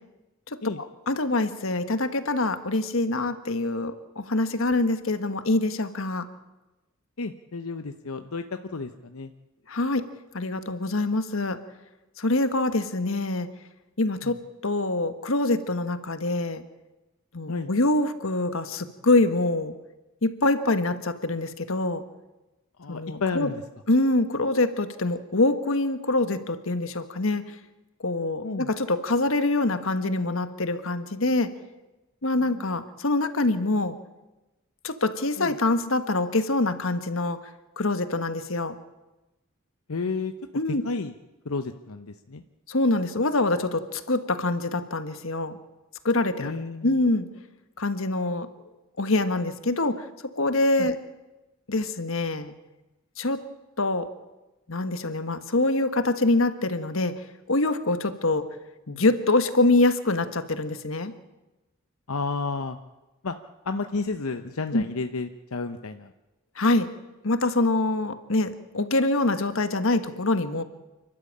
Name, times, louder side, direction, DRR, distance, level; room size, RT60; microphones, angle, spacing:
voice 1, 1.1-6.2 9.7-10.0 10.3-11.6 12.2-13.5 14.0-16.6 17.3-19.7 20.2-22.0 22.9-23.5 23.9-27.4 28.0-31.5 32.2-33.9 34.8-37.4 37.8-38.7 40.5-40.8 42.7-45.6 46.0-46.5 46.8-47.3 47.8-48.5 49.0-50.0 50.4-51.0 51.7-52.5 53.2-53.4 53.8-54.1 54.7-57.1 57.5-58.5 58.9-61.1 64.7-64.8 66.6-66.9 67.2-70.6, left 2 dB, 70° left, 10 dB, 1.5 m, -25 dB
voice 2, 7.2-9.3 14.2-14.4 17.5-17.7 22.8-23.6 28.4-28.7 32.4-32.8 35.4-35.6 39.9-40.3 40.7-41.1 41.4-42.4 46.4-47.0 50.8-50.9 62.1-62.8 63.2-63.4 63.6-66.1, left 4 dB, 90° left, 8 dB, 0.9 m, -32 dB
29.0 x 12.5 x 8.7 m, 1.0 s
head